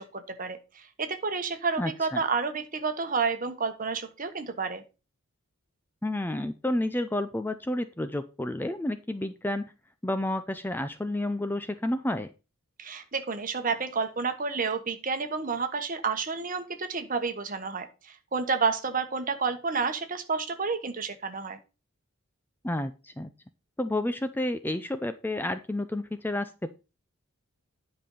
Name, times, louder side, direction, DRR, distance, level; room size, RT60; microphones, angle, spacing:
voice 1, 0.0-4.8 12.8-21.6, right 5 dB, 40° right, 8 dB, 1.2 m, -30 dB
voice 2, 1.8-2.2 6.0-9.7 10.0-12.3 22.6-23.3 23.8-26.7, left 1 dB, 10° left, 10 dB, 0.4 m, -30 dB
10.0 x 5.3 x 5.5 m, 0.30 s
head